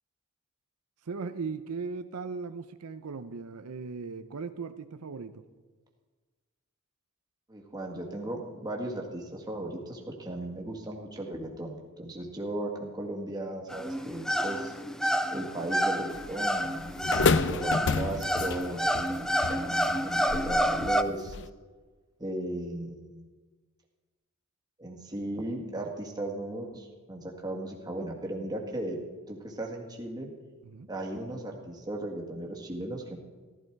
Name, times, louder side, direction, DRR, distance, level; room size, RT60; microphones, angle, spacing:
voice 1, 1.0-5.4 30.6-30.9, right 4 dB, 80° right, 10 dB, 0.6 m, -38 dB
voice 2, 7.5-14.7 15.3-21.4 22.2-23.2 24.8-29.0 29.3-30.3 30.9-33.2, right 1 dB, 20° right, 0 dB, 1.9 m, -36 dB
sound 1, 13.7-21.0, equal, ahead, 0.4 m, -29 dB
sound 2, 16.1-21.5, left 4 dB, 55° left, 0.5 m, -31 dB
15.0 x 13.0 x 4.7 m, 1.4 s
head